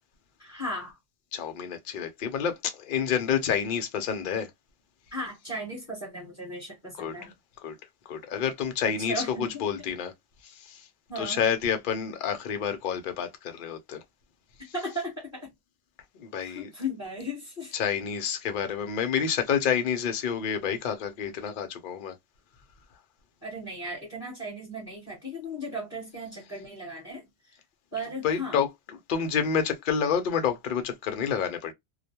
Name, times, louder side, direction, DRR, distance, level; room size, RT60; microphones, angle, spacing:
voice 1, 0.4-1.0 5.1-7.3 9.0-9.6 11.1-11.4 14.7-15.5 16.4-17.7 23.4-27.6 27.9-28.6, equal, 15° left, 1.2 m, -36 dB
voice 2, 1.3-4.5 7.0-7.3 7.6-7.8 8.1-10.1 10.4-10.9 11.2-14.0 16.2-16.7 17.7-22.2 28.2-28.7 29.1-31.7, left 7 dB, 55° left, 0.6 m, -29 dB
2.2 x 2.2 x 2.7 m
omnidirectional pair, 1.1 m